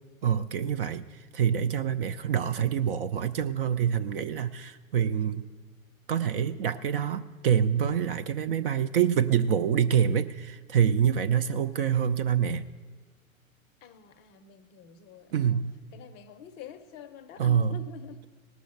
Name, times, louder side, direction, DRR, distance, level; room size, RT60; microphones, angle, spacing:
voice 1, 0.2-5.5 6.1-12.6 15.3-15.7 17.4-17.8, right 8 dB, 45° right, 11 dB, 0.4 m, -26 dB
voice 2, 13.8-15.6 15.9-18.3, left 8 dB, 25° left, 10 dB, 0.6 m, -47 dB
17.5 x 6.2 x 7.6 m, 1.4 s
hypercardioid pair, 110°, 42 cm